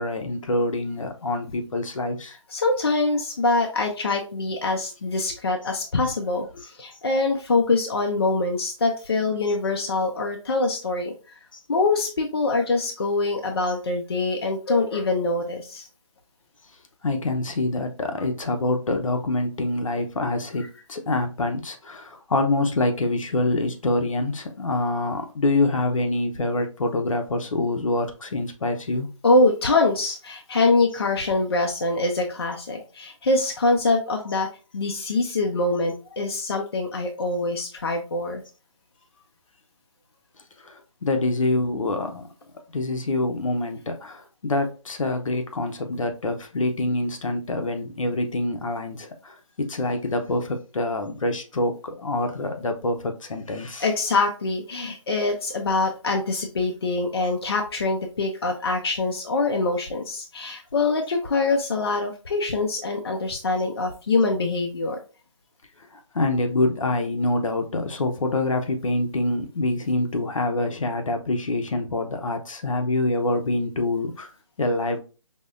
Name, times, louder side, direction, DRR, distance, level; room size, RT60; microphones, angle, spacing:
voice 1, 0.0-2.4 11.5-11.6 17.0-29.1 40.6-42.3 42.7-53.9 65.9-74.3 74.6-75.0, left 2 dB, 70° left, 0.8 m, -26 dB
voice 2, 2.5-11.1 11.7-15.9 29.2-34.5 34.7-38.4 53.8-65.0, left 3 dB, 45° left, 0.6 m, -24 dB
5.3 x 2.1 x 2.5 m
hypercardioid pair, 170°, 17 cm